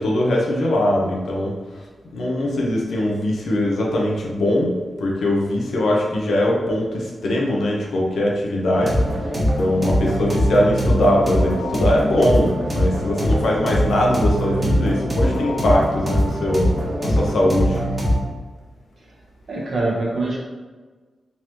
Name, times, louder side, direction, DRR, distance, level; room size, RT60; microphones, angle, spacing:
voice 1, 0.0-1.5 2.1-4.7 5.0-9.2 9.6-16.7 17.0-17.8, left 1 dB, 85° left, -2 dB, 0.8 m, -21 dB
sound 1, 8.7-18.2, equal, 30° right, 1.3 m, -22 dB
voice 2, 19.5-20.4, right 2 dB, 60° right, -3 dB, 1.1 m, -24 dB
3.8 x 3.0 x 3.0 m, 1.3 s
cardioid pair, 80°, 0 cm